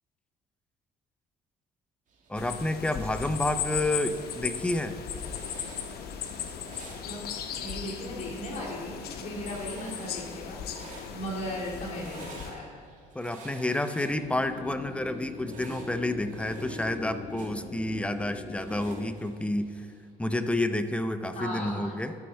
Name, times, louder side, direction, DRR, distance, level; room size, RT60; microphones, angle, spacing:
sound 1, 2.1-20.1, right 3 dB, 50° right, 1.9 m, -52 dB
voice 1, 2.3-5.0 13.1-19.9 20.2-22.2, left 1 dB, 5° left, 10 dB, 0.4 m, -30 dB
sound 2, 2.4-12.5, left 8 dB, 70° left, 0.8 m, -37 dB
voice 2, 7.6-12.7 21.4-21.9, equal, 45° left, -5 dB, 2.4 m, -37 dB
sound 3, 14.0-19.1, left 4 dB, 30° left, 1.4 m, -41 dB
12.0 x 5.3 x 4.4 m, 2.4 s
cardioid pair, 110°, 17 cm